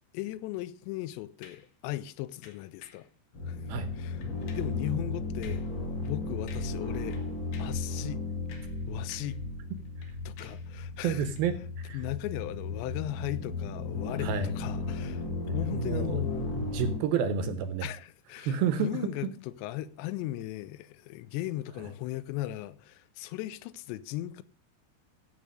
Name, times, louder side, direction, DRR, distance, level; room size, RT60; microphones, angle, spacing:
voice 1, 0.1-3.1 3.5-3.6 4.0-4.2 4.6-5.7 6.0-7.2 7.6-8.2 8.9-9.4 10.3-11.3 11.9-16.7 17.4-17.5 17.8-24.4, left 15 dB, 90° left, 2.9 m, -37 dB
sound 1, 1.4-1.7 2.4-3.1 3.7-3.9 4.2-4.8 5.4-5.7 6.0-6.2 6.5-6.8 7.1-7.8 8.3-9.4 9.7-10.7 11.3-11.5, left 7 dB, 75° left, 3.8 m, -54 dB
sound 2, 3.3-17.0, left 3 dB, 40° left, 1.7 m, -35 dB
voice 2, 11.0-11.6 11.8-12.0 14.2-14.5 15.6-17.9 18.4-18.9, right 7 dB, 70° right, 2.5 m, -30 dB
14.5 x 5.5 x 6.4 m
omnidirectional pair, 5.0 m